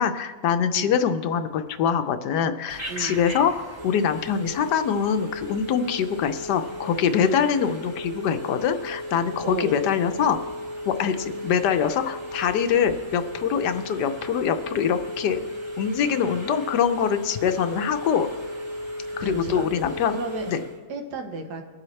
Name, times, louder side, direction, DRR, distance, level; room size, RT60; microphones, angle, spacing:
voice 1, 0.0-3.5 3.8-10.4 10.9-15.4 15.8-18.3 19.2-20.2 20.5-20.6, left 7 dB, 80° left, 9 dB, 1.3 m, -24 dB
Telephone, 2.7-20.8, equal, 15° right, 1.6 m, -35 dB
voice 2, 2.9-3.2 7.2-7.4 9.4-9.8 19.2-19.7 20.1-20.5 20.9-21.6, right 3 dB, 75° right, 5 dB, 1.7 m, -32 dB
22.5 x 7.7 x 3.2 m, 1.5 s
omnidirectional pair, 1.8 m